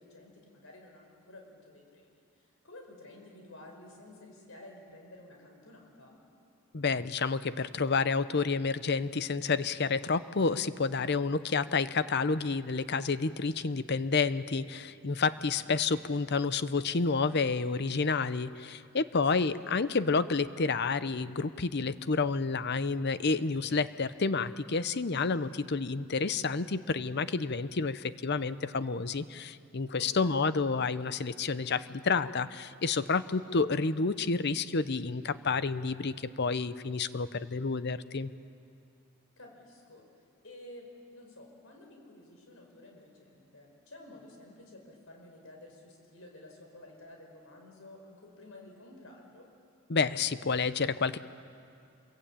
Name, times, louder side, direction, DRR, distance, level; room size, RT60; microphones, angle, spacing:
voice 1, 0.0-6.2 19.1-19.5 30.0-30.4 39.4-49.5, left 1 dB, 75° left, 1 dB, 5.2 m, -52 dB
voice 2, 6.7-38.3 49.9-51.2, left 4 dB, 50° left, 14 dB, 0.7 m, -29 dB
27.5 x 22.5 x 8.9 m, 2.4 s
head